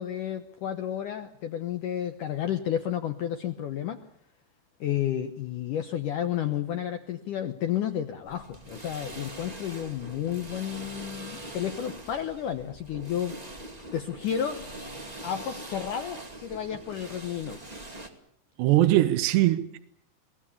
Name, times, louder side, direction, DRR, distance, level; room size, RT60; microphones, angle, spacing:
voice 1, 0.0-4.0 4.8-13.4 13.9-14.8 15.2-17.6, left 10 dB, 75° left, 1.9 m, -31 dB
sound 1, 8.3-18.1, right 1 dB, 20° right, 1.0 m, -42 dB
voice 2, 18.6-19.8, right 15 dB, 75° right, 3.1 m, -21 dB
23.5 x 18.5 x 8.4 m
omnidirectional pair, 5.1 m